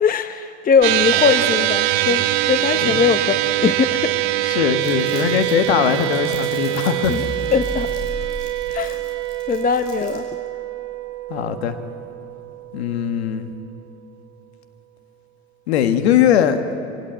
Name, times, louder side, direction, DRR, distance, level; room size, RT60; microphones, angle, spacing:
voice 1, 0.0-4.1 7.1-7.3 7.5-7.9 8.7-9.0 9.5-10.3, left 6 dB, 25° left, 10 dB, 0.9 m, -20 dB
sound 1, 0.8-13.3, right 15 dB, 60° right, 1.3 m, -23 dB
voice 2, 4.4-7.2 11.3-11.8 12.7-13.5 15.7-16.6, left 9 dB, 80° left, 9 dB, 1.6 m, -20 dB
Crumpling crinkling, 4.8-10.3, left 4 dB, 60° left, 6.0 m, -45 dB
sound 2, 7.0-11.5, equal, 5° right, 1.0 m, -36 dB
24.5 x 17.5 x 9.1 m, 2.8 s
hypercardioid pair, 75°, 31 cm